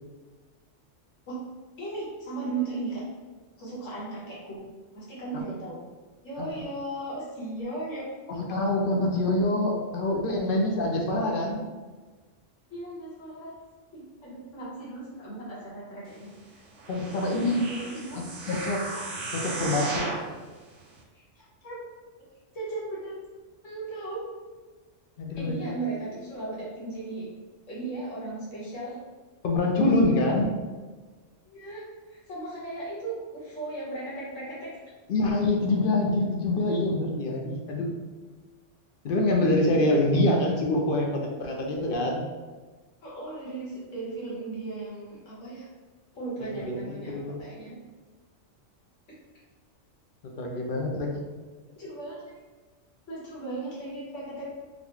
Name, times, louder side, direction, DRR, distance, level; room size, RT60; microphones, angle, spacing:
voice 1, 1.8-3.0 3.6-4.6 4.9-5.8 6.2-8.1 12.7-13.5 13.9-16.6 17.7-18.2 21.1-21.8 22.5-23.1 23.6-24.2 25.3-27.2 27.7-29.0 31.4-34.7 43.0-45.7 46.1-47.8 51.8-52.2 53.1-54.5, right 2 dB, 80° left, -8 dB, 1.7 m, -36 dB
voice 2, 8.3-11.6 16.9-17.7 18.5-18.9 19.3-20.1 25.2-25.7 29.4-30.5 35.1-37.9 39.0-42.2 46.4-47.4 50.4-51.2, left 2 dB, 60° left, 1 dB, 0.6 m, -25 dB
sound 1, 16.8-20.3 20.9-21.0, right 2 dB, 70° right, 0.8 m, -35 dB
4.1 x 2.2 x 3.0 m, 1.3 s
omnidirectional pair, 1.3 m